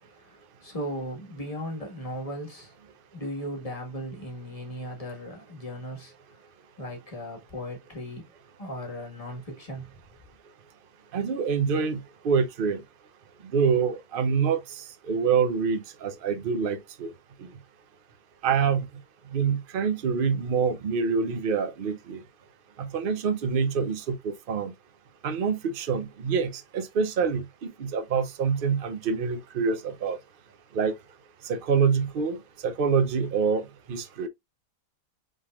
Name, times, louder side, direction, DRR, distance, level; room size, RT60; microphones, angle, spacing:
voice 1, 0.0-2.8 3.1-6.4 6.8-8.3 8.6-9.9, equal, 20° left, 1.5 m, -37 dB
voice 2, 11.1-12.8 13.5-17.1 18.4-18.9 19.3-22.2 22.8-24.7 25.2-30.2 30.7-30.9 31.4-32.4 32.6-34.3, right 6 dB, 55° right, 0.6 m, -26 dB
5.4 x 3.5 x 2.4 m
omnidirectional pair, 1.7 m